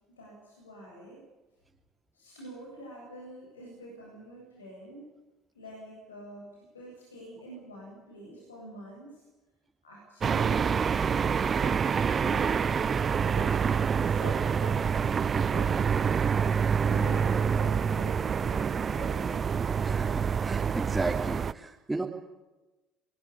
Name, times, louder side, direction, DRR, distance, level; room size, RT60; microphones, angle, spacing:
voice 1, 0.1-1.3 2.1-5.1 5.5-9.2 9.8-11.8 12.1-16.2 16.8-19.3, equal, 90° left, -3 dB, 8.0 m, -46 dB
sound 1, 10.2-21.5, right 6 dB, 35° right, 0.8 m, -27 dB
voice 2, 19.8-22.0, right 3 dB, 10° right, -2 dB, 3.2 m, -34 dB
22.0 x 22.0 x 8.7 m, 1.1 s
hypercardioid pair, 60°, 0 cm